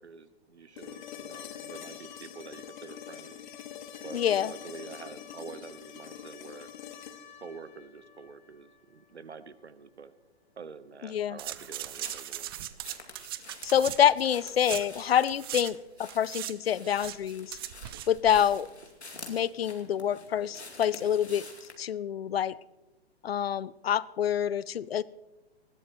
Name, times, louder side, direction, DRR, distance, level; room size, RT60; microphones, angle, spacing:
voice 1, 0.0-3.4 4.0-6.7 7.4-10.1 10.6-12.5, right 5 dB, 85° right, 14 dB, 1.1 m, -47 dB
sound 1, 0.8-8.8 10.9-11.0, left 9 dB, 45° left, 1.2 m, -45 dB
voice 2, 4.1-4.5 11.0-11.4 13.6-17.6 18.1-18.7 19.3-21.5 21.8-22.5 23.2-25.0, left 9 dB, 65° left, 21 dB, 0.6 m, -27 dB
sound 2, 11.4-15.7 16.0-18.6 18.8-18.9, right 13 dB, 25° right, 0.4 m, -39 dB
sound 3, 11.6-21.8, left 3 dB, 90° left, 2.4 m, -49 dB
20.0 x 15.5 x 3.1 m, 1.0 s
figure-of-eight pair, 120°, 32 cm